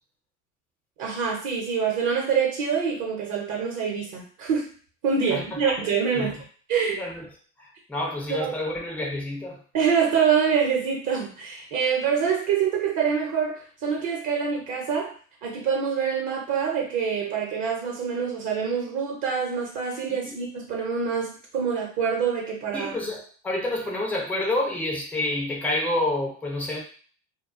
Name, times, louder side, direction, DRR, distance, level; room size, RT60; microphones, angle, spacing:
voice 1, 1.0-4.7 5.0-6.4 6.7-7.0 8.3-8.5 9.7-15.1 15.4-23.0, right 6 dB, 50° right, -2 dB, 0.8 m, -25 dB
voice 2, 5.3-5.8 6.2-6.3 6.9-7.3 7.6-9.6 20.1-20.3 22.7-26.8, left 1 dB, 5° left, -1 dB, 0.4 m, -29 dB
2.3 x 2.2 x 2.4 m, 0.43 s
supercardioid pair, 110°, 41 cm